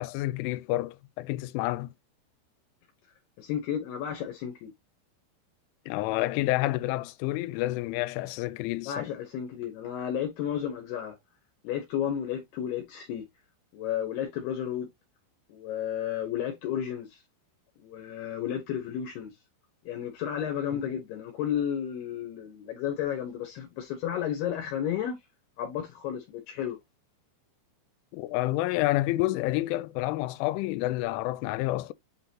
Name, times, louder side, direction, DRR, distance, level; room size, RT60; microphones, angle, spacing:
voice 1, 0.0-1.9 5.9-9.1 20.7-20.9 28.1-31.9, left 17 dB, 90° left, 3.0 m, -29 dB
voice 2, 3.4-4.7 8.9-11.2 11.6-13.2 13.7-14.9 15.5-17.2 17.8-19.3 19.9-25.2 25.6-26.8, left 9 dB, 70° left, 2.7 m, -32 dB
8.6 x 3.9 x 2.8 m
omnidirectional pair, 5.5 m